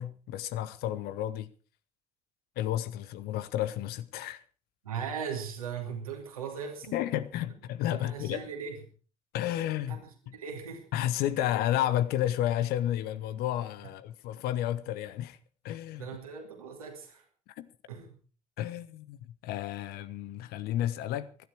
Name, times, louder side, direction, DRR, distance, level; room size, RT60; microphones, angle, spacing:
voice 1, 0.0-1.5 2.6-4.4 6.9-8.4 9.3-10.0 10.9-15.4 15.6-16.1 17.5-17.7 18.6-21.3, left 12 dB, 60° left, 1.0 m, -31 dB
voice 2, 4.8-7.1 7.9-8.8 9.5-10.8 11.4-11.5 16.0-17.2 17.9-18.2, right 6 dB, 85° right, 2.8 m, -39 dB
17.0 x 12.5 x 4.7 m
figure-of-eight pair, 50°, 18 cm